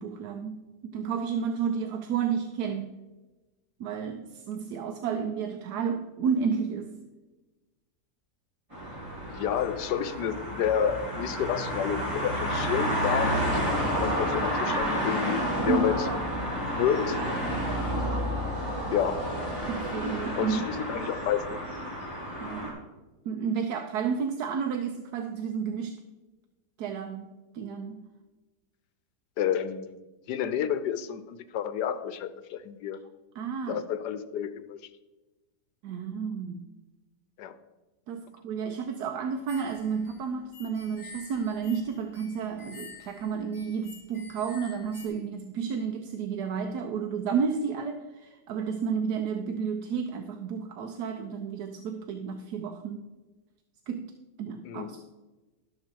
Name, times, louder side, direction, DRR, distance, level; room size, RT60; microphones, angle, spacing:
voice 1, 0.0-2.9 3.8-6.9 15.7-15.9 19.7-20.8 22.4-22.8 23.2-26.0 26.8-27.3 27.5-28.1 33.3-33.8 35.8-36.7 38.1-53.1 53.9-55.0, right 6 dB, 80° right, 6 dB, 1.2 m, -31 dB
sound 1, 8.7-22.7, equal, 15° right, 4.2 m, -30 dB
voice 2, 9.2-13.6 14.0-16.0 16.6-17.2 18.9-19.2 20.4-21.6 29.4-30.0 30.3-33.0 33.7-34.8 37.4-37.5 54.6-55.0, left 9 dB, 80° left, 12 dB, 1.3 m, -30 dB
sound 2, 39.5-45.1, left 3 dB, 20° left, 3.1 m, -49 dB
12.0 x 6.7 x 4.5 m, 1.2 s
omnidirectional pair, 1.8 m